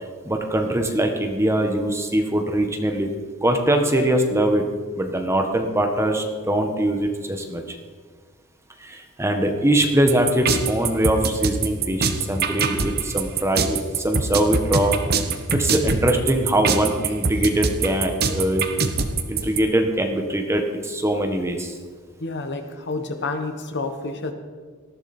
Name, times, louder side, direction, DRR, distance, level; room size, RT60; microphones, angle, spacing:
voice 1, 0.2-3.1 3.4-4.6 5.0-7.8 8.8-15.0 15.5-18.7 19.3-21.7, right 1 dB, 10° right, 4 dB, 1.4 m, -22 dB
sound 1, 10.1-19.6, right 4 dB, 45° right, 1.2 m, -23 dB
voice 2, 22.2-24.3, left 3 dB, 55° left, 7 dB, 1.3 m, -29 dB
19.0 x 14.0 x 4.4 m, 1.5 s
head